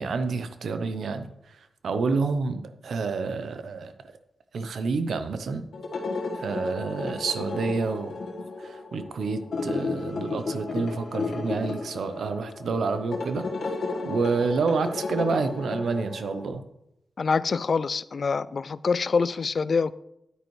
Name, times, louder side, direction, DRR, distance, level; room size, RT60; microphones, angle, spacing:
voice 1, 0.0-3.9 4.5-5.7 6.3-8.2 8.6-13.5 14.0-16.6, right 4 dB, 80° right, 0.7 m, -28 dB
sound 1, 5.7-16.5, left 3 dB, 75° left, 1.5 m, -33 dB
voice 2, 17.2-19.9, left 5 dB, 60° left, 0.3 m, -25 dB
9.9 x 9.0 x 3.2 m
cardioid pair, 70°, 0 cm